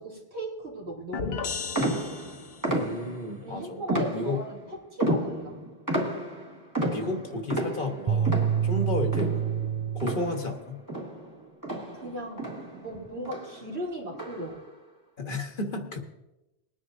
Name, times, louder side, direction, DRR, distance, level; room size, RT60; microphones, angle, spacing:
voice 1, 0.0-2.1 3.4-5.6 8.7-8.9 11.9-12.4 12.7-14.6, right 1 dB, 75° right, -3 dB, 3.1 m, -37 dB
sound 1, 1.1-2.8, left 5 dB, 70° left, 1.0 m, -34 dB
sound 2, 1.7-3.3 3.9-4.6 5.0-10.6 10.9-12.9 13.2-13.6 14.1-14.6, right 1 dB, 15° right, 1.8 m, -32 dB
voice 2, 2.8-3.8 4.1-4.4 6.8-9.4 9.9-10.8 15.2-16.0, left 2 dB, 55° left, 4 dB, 1.4 m, -32 dB
sound 3, 8.1-10.6, right 8 dB, 45° right, 0.4 m, -27 dB
21.0 x 10.0 x 2.6 m, 0.95 s
omnidirectional pair, 1.1 m